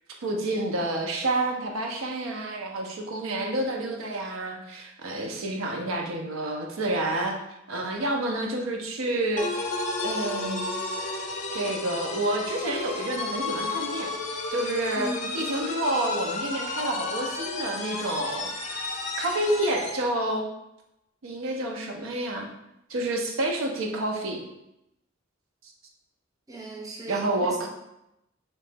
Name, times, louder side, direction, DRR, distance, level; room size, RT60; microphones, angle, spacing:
voice 1, 0.2-7.4 7.7-9.8 10.0-10.6 11.5-14.1 14.5-18.9 19.2-20.5 21.2-22.5 22.9-24.4 27.1-27.7, right 1 dB, 85° right, 1 dB, 0.5 m, -29 dB
sound 1, 9.4-20.1, left 3 dB, 35° left, 0.5 m, -32 dB
voice 2, 26.5-27.7, right 1 dB, 20° right, -1 dB, 0.6 m, -37 dB
3.1 x 2.8 x 3.4 m, 0.86 s
head